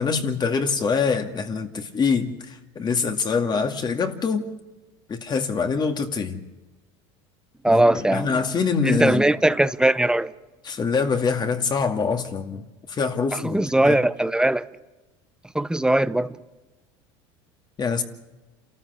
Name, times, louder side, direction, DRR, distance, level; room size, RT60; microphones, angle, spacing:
voice 1, 0.0-4.5 5.1-6.4 7.7-9.3 10.6-13.6 13.8-14.0 17.8-18.0, left 5 dB, 30° left, 2.2 m, -24 dB
voice 2, 7.6-8.3 8.8-10.3 13.4-14.7 15.5-16.3, right 1 dB, 5° right, 0.7 m, -20 dB
28.0 x 14.0 x 8.2 m
supercardioid pair, 105°, 14 cm